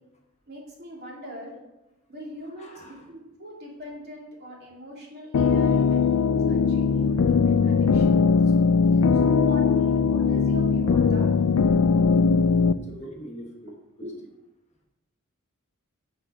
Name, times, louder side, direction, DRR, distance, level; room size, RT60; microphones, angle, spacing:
voice 1, 0.5-1.6 2.1-8.7 9.2-11.4 13.0-13.1 14.0-14.2, equal, 50° right, -3 dB, 2.8 m, -41 dB
voice 2, 2.6-3.1 12.7-13.7, equal, 30° left, 0 dB, 1.4 m, -42 dB
sound 1, 5.3-12.7, left 5 dB, 80° left, 0.4 m, -20 dB
8.9 x 5.9 x 5.0 m, 0.93 s
head